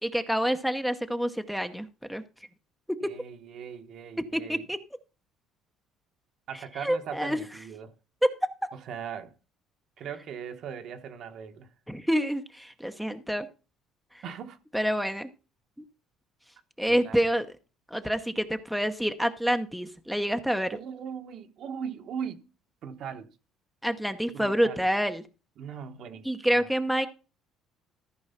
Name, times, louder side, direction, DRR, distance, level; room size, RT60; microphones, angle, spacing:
voice 1, 0.0-2.2 3.0-3.1 4.3-4.8 6.8-7.4 8.2-8.3 11.9-13.5 14.1-14.2 14.7-15.3 16.8-17.5 17.9-20.8 23.8-25.2 26.2-27.1, equal, ahead, 0.8 m, -27 dB
voice 2, 3.0-4.6 6.5-7.9 8.7-9.3 10.0-11.7 14.2-14.6 16.9-17.3 20.7-22.5 22.8-23.3 24.3-24.9 25.6-26.7, right 7 dB, 55° right, 1.1 m, -39 dB
14.0 x 4.7 x 5.7 m
cardioid pair, 125°, 0 cm